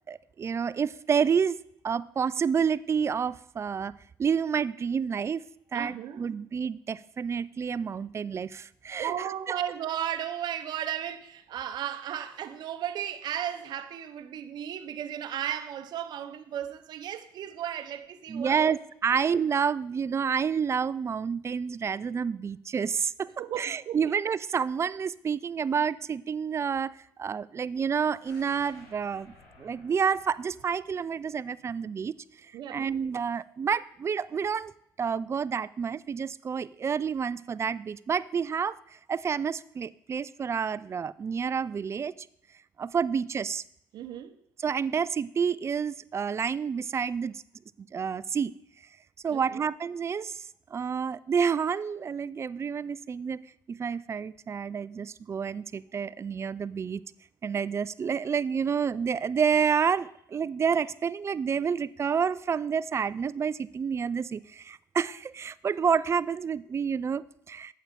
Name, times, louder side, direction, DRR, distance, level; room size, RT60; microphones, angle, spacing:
voice 1, 0.1-1.6 1.8-3.9 4.2-5.4 5.7-9.6 18.3-32.1 32.4-34.7 35.0-38.8 39.1-42.3 42.8-43.6 44.6-47.4 47.8-48.5 49.2-53.4 53.7-57.0 57.4-67.7, right 6 dB, 35° right, 0.4 m, -29 dB
voice 2, 5.7-6.3 9.0-18.8 23.4-24.1 32.5-32.8 43.9-44.4 49.3-49.6, right 10 dB, 65° right, 0.8 m, -35 dB
sound 1, 28.2-32.2 32.6-32.7, left 2 dB, 75° left, 3.8 m, -58 dB
8.9 x 7.5 x 5.1 m
supercardioid pair, 75°, 8 cm